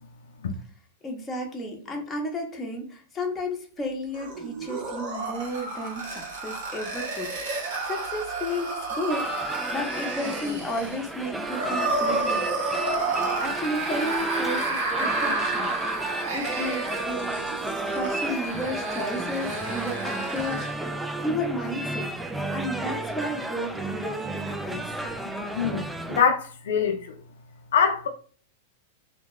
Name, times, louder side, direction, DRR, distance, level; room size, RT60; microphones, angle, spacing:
voice 1, 1.0-9.3 9.7-12.5 13.4-15.8 16.3-17.4 17.9-22.1 22.5-25.0 25.4-25.5, left 1 dB, 20° left, 0.8 m, -33 dB
sound 1, 4.1-20.8, right 3 dB, 70° right, 1.1 m, -31 dB
sound 2, 9.1-26.2, right 2 dB, 5° right, 0.3 m, -32 dB
voice 2, 25.6-27.2 27.7-28.1, left 7 dB, 80° left, 0.4 m, -24 dB
2.6 x 2.2 x 3.1 m
hypercardioid pair, 120°, 0 cm